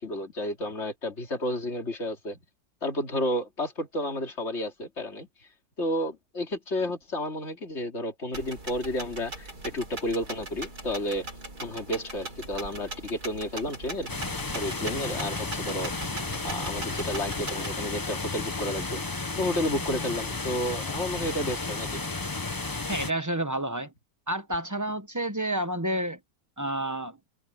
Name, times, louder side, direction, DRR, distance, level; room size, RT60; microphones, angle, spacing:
voice 1, 0.0-2.4 2.8-5.3 5.8-11.3 11.6-14.1 14.5-15.9 16.4-19.0 19.3-22.0, left 1 dB, 45° left, 3.3 m, -31 dB
sound 1, 8.3-17.8, right 2 dB, 85° right, 4.9 m, -40 dB
sound 2, 14.1-23.1, left 3 dB, 20° left, 0.6 m, -33 dB
voice 2, 22.9-23.9 24.3-26.2 26.6-27.2, right 1 dB, 15° right, 0.9 m, -29 dB
omnidirectional pair, 1.6 m